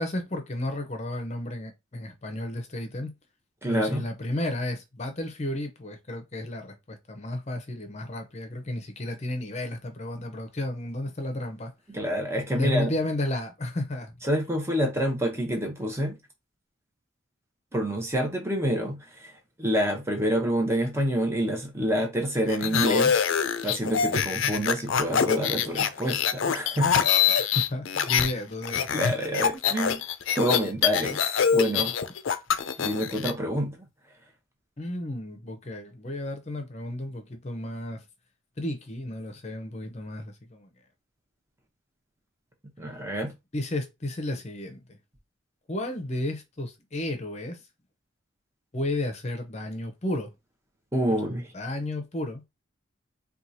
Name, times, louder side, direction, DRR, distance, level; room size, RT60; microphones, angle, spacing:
voice 1, 0.0-3.1 3.7-11.7 12.5-14.2 27.5-28.9 34.8-38.0 38.6-40.7 43.5-45.0 45.7-47.6 48.7-50.3 51.2-52.4, left 1 dB, 35° left, 0.7 m, -32 dB
voice 2, 3.6-4.0 11.9-12.9 14.2-16.2 17.7-23.2 23.6-27.1 28.9-30.0 30.4-32.0 32.8-33.8 42.8-43.3 50.9-51.5, equal, 15° right, 0.8 m, -27 dB
sound 1, 22.5-28.3 28.6-33.3, left 7 dB, 75° left, 0.4 m, -25 dB
4.5 x 2.3 x 2.7 m
head